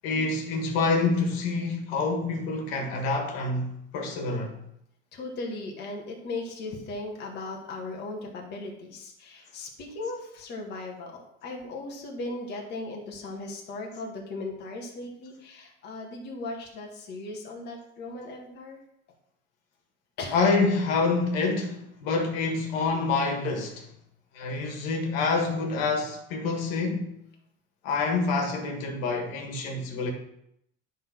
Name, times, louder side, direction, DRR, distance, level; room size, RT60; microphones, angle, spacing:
voice 1, 0.0-4.5 20.3-23.9 24.3-27.1 27.8-30.1, left 3 dB, 80° left, 1.8 m, -27 dB
voice 2, 5.1-18.8 20.2-20.4, left 2 dB, 35° left, 1.7 m, -37 dB
10.5 x 3.9 x 6.0 m
cardioid pair, 175°, 29 cm